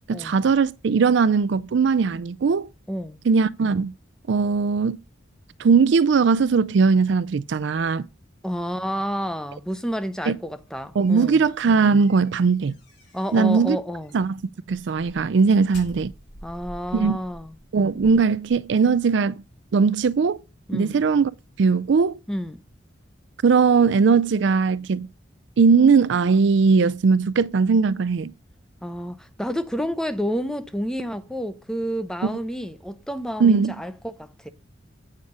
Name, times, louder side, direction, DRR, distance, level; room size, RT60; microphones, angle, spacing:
voice 1, 0.1-2.7 3.3-3.9 4.3-5.0 5.6-8.1 10.3-10.4 11.0-12.7 13.3-13.8 14.1-14.4 14.7-16.1 16.9-17.2 17.7-19.4 19.7-20.4 20.7-21.3 21.6-22.2 23.4-25.1 25.6-28.3 33.4-33.7, right 5 dB, 65° right, 0.4 m, -19 dB
voice 2, 2.9-3.2 8.4-11.4 13.1-14.1 16.4-17.5 20.7-21.0 22.3-22.6 28.8-34.5, equal, 5° left, 0.6 m, -29 dB
sound 1, 10.6-13.5 14.0-14.2 14.7-18.9, equal, 65° left, 3.8 m, -47 dB
8.8 x 4.9 x 5.3 m
head